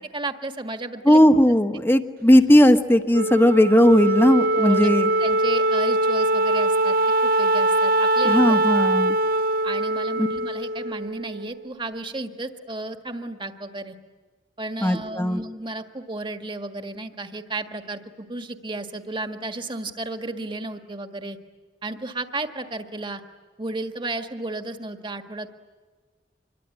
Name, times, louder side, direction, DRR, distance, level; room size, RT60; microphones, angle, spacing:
voice 1, 0.1-1.2 4.5-4.9 5.2-7.0 7.2-8.9 9.6-14.0 14.6-18.0 18.3-21.4 21.8-23.2 23.6-25.5, right 2 dB, 30° right, 6 dB, 1.7 m, -33 dB
voice 2, 1.0-5.1 8.2-9.2 10.2-10.3 14.8-15.4, equal, 15° left, 7 dB, 1.2 m, -17 dB
Wind instrument woodwind instrument, 3.1-11.7, right 1 dB, 55° right, 0.8 m, -22 dB
26.0 x 22.5 x 10.0 m, 1.4 s
head